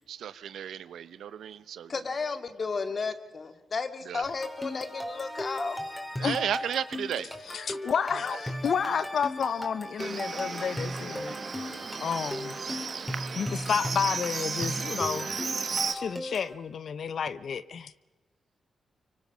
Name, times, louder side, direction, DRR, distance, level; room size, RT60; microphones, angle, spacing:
voice 1, 0.1-1.9 4.1-4.2 6.2-7.3, right 9 dB, 80° right, 15 dB, 1.0 m, -33 dB
voice 2, 1.9-5.8, left 4 dB, 50° left, 10 dB, 2.3 m, -33 dB
sound 1, 4.2-16.5, equal, 10° left, 4.4 m, -37 dB
voice 3, 7.5-11.4 12.0-12.6 13.3-15.4 15.9-17.9, left 7 dB, 70° left, 15 dB, 1.0 m, -31 dB
Livestock farm animals working animals, 10.0-16.0, right 5 dB, 55° right, 1.4 m, -35 dB
24.5 x 24.5 x 6.4 m, 1.2 s
cardioid pair, 60°, 0 cm